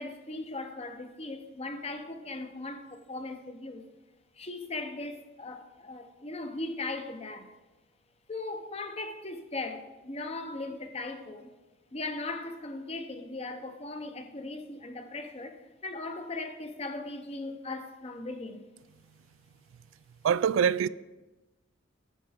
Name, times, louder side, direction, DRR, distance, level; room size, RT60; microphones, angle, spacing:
voice 1, 0.0-3.8 4.4-7.5 8.3-11.5 11.9-18.7, left 2 dB, 30° left, 0.7 m, -38 dB
voice 2, 20.2-20.9, right 8 dB, 80° right, 0.3 m, -24 dB
9.6 x 5.7 x 5.0 m
head